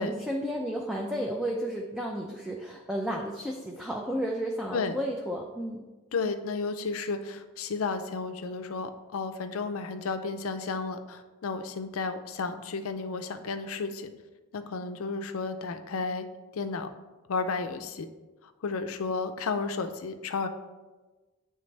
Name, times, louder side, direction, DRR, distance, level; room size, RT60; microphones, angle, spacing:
voice 1, 0.0-5.8, equal, 5° right, -1 dB, 0.4 m, -32 dB
voice 2, 6.1-14.1 14.5-16.3 16.6-16.9 17.3-18.1 18.6-20.5, left 4 dB, 75° left, 8 dB, 0.5 m, -32 dB
9.4 x 3.4 x 3.2 m, 1.2 s
head